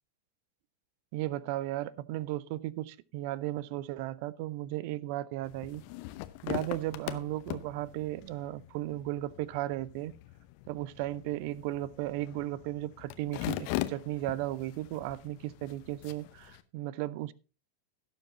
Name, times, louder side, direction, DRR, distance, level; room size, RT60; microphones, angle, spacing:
voice 1, 1.1-5.8 6.4-10.1 10.7-17.3, right 15 dB, 45° right, 0.6 m, -35 dB
sound 1, 5.4-16.6, left 17 dB, 45° left, 0.8 m, -41 dB
17.5 x 7.3 x 2.9 m
figure-of-eight pair, 90°, 0 cm